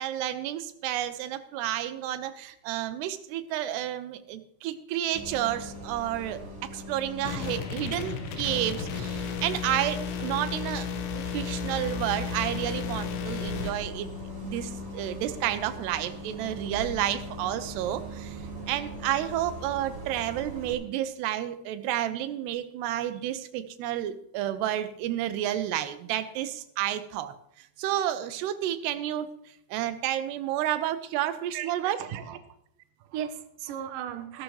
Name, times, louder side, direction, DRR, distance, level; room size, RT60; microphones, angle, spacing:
voice 1, 0.0-10.9 11.1-14.1 14.4-18.4 18.7-29.3 29.7-32.0, right 12 dB, 90° right, 11 dB, 2.9 m, -31 dB
Bus, 5.1-20.7, equal, 20° right, 2.8 m, -40 dB
sound 1, 7.2-13.7, left 7 dB, 85° left, 3.2 m, -34 dB
voice 2, 31.5-32.4 33.0-34.4, right 10 dB, 70° right, 8 dB, 2.1 m, -36 dB
14.5 x 12.5 x 3.2 m, 0.74 s
omnidirectional pair, 4.6 m